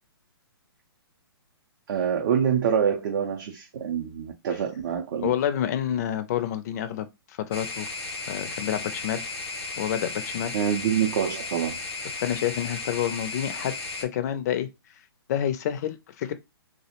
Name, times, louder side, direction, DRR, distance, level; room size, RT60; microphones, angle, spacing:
voice 1, 1.9-5.3 10.5-11.8, right 8 dB, 50° right, 0.4 m, -26 dB
voice 2, 5.2-7.9 8.3-9.3 9.8-10.5 12.1-13.7 14.0-14.7 15.3-16.3, left 10 dB, 40° left, 0.4 m, -28 dB
sound 1, 7.5-14.0, left 3 dB, 85° left, 0.6 m, -35 dB
2.4 x 2.0 x 2.8 m
hypercardioid pair, 135°, 13 cm